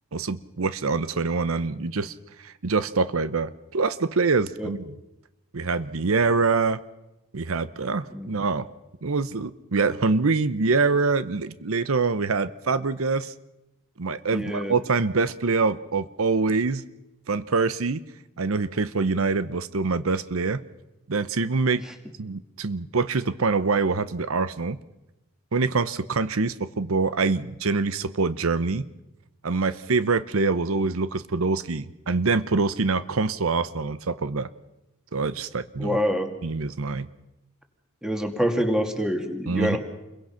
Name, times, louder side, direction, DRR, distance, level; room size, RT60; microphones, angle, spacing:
voice 1, 0.1-2.1 2.4-4.9 5.5-6.8 7.3-8.7 9.0-13.3 14.0-16.8 17.3-18.0 18.4-20.6 21.1-21.8 22.2-24.8 25.5-28.9 29.4-34.5 35.1-36.0 36.4-37.1 39.5-39.8, right 4 dB, 75° right, 14 dB, 0.8 m, -25 dB
voice 2, 14.3-14.7 35.8-36.3 38.0-39.8, equal, 5° right, 5 dB, 2.2 m, -26 dB
29.0 x 22.5 x 5.8 m, 0.95 s
head